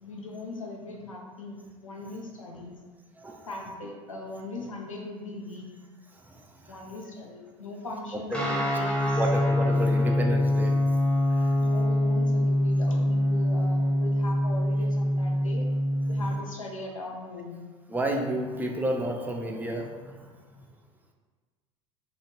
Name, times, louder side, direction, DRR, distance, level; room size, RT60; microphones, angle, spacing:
voice 1, 0.0-2.8 3.5-5.8 6.7-9.2 11.6-15.7 16.1-17.6, left 2 dB, 85° left, 0 dB, 0.5 m, -39 dB
voice 2, 3.2-3.5 6.2-6.8 8.3-8.4 8.7-8.8 9.1-10.8 11.3-11.6 17.9-20.3, right 1 dB, 10° right, 1 dB, 0.4 m, -31 dB
Guitar, 8.3-16.4, left 1 dB, 5° left, 0.8 m, -24 dB
2.9 x 2.3 x 3.0 m, 1.4 s
figure-of-eight pair, 70°, 17 cm